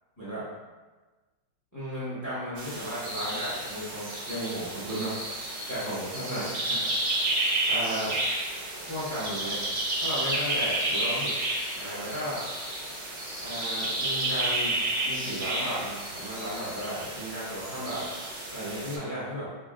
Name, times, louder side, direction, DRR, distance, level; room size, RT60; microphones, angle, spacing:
voice 1, 1.7-6.8 7.7-8.2 8.8-9.6 10.0-11.3 11.8-12.4 13.4-14.8 15.0-18.1 18.5-19.5, equal, 25° left, -8 dB, 0.4 m, -34 dB
sound 1, 2.6-19.0, right 1 dB, 65° right, 0.7 m, -31 dB
5.0 x 2.5 x 2.4 m, 1.3 s
omnidirectional pair, 2.2 m